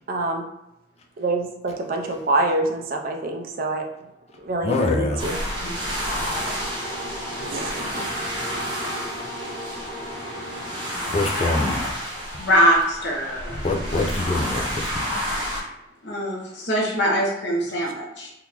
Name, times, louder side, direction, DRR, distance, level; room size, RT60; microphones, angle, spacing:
voice 1, 0.1-0.4 1.2-3.9 4.4-5.4 7.4-8.1, right 2 dB, 50° right, 3 dB, 0.4 m, -26 dB
sound 1, 4.3-11.1, equal, 65° right, 0.8 m, -37 dB
voice 2, 4.6-5.2 11.1-11.8 13.6-15.0, left 2 dB, 35° left, 2 dB, 0.5 m, -24 dB
sound 2, 5.2-15.6, equal, 25° right, 0.8 m, -30 dB
voice 3, 12.4-13.6 16.0-18.3, equal, 70° left, -3 dB, 1.0 m, -22 dB
3.6 x 2.5 x 2.9 m, 0.86 s
head